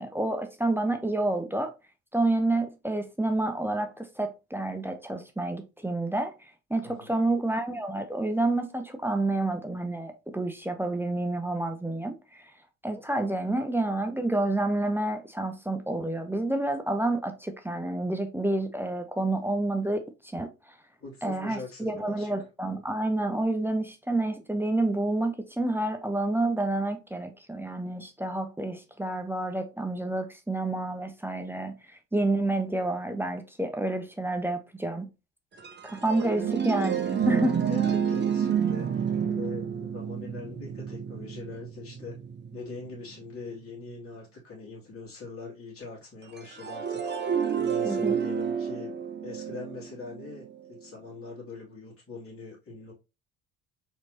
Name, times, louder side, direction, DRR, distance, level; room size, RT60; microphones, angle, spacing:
voice 1, 0.0-1.7 2.1-6.3 6.7-12.5 12.8-20.0 20.3-20.5 21.2-31.7 32.1-35.1 35.8-37.6 47.8-48.2, right 2 dB, 5° right, 0.7 m, -29 dB
voice 2, 6.8-7.2 21.0-22.3 36.3-36.5 37.2-42.2 42.5-47.0 47.5-48.9 49.2-52.9, left 4 dB, 35° left, 2.5 m, -42 dB
sound 1, 35.6-43.2 46.4-50.5, right 7 dB, 25° right, 1.0 m, -29 dB
4.4 x 4.0 x 2.8 m
figure-of-eight pair, 60°, 40 cm